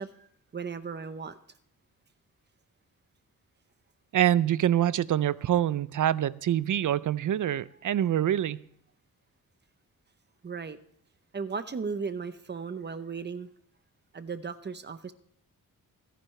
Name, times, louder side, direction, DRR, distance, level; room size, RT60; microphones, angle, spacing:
voice 1, 0.0-1.4 7.9-8.0 10.4-10.8 11.3-13.5 14.1-15.1, right 5 dB, 30° right, 0.7 m, -36 dB
voice 2, 4.1-8.6, right 11 dB, 60° right, 0.5 m, -25 dB
26.0 x 10.5 x 3.2 m
wide cardioid pair, 160°, 35 cm